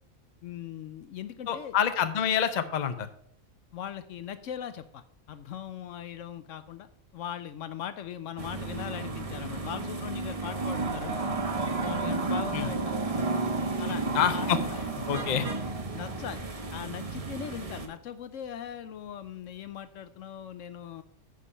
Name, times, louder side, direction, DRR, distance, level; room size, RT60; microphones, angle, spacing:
voice 1, 0.4-1.7 3.7-11.4 11.8-13.3 13.8-14.8 15.9-21.0, left 9 dB, 70° left, 12 dB, 0.9 m, -40 dB
voice 2, 1.5-3.1 12.5-12.7 14.1-14.6 15.1-15.5, left 8 dB, 45° left, 10 dB, 0.6 m, -27 dB
sound 1, 8.4-17.9, right 3 dB, 30° right, 0.9 m, -32 dB
9.9 x 5.2 x 5.5 m, 0.67 s
omnidirectional pair, 1.4 m